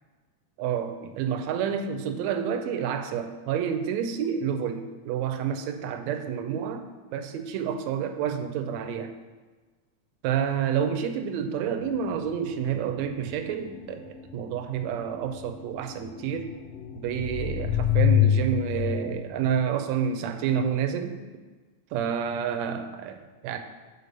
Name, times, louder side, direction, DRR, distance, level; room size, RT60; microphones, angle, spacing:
voice 1, 0.6-6.9 7.1-9.1 10.2-16.5 16.9-21.2 21.9-23.6, right 8 dB, 80° right, 7 dB, 1.8 m, -29 dB
sound 1, 11.9-19.1, left 9 dB, 80° left, 1.5 m, -26 dB
6.8 x 4.4 x 6.6 m, 1.3 s
omnidirectional pair, 3.4 m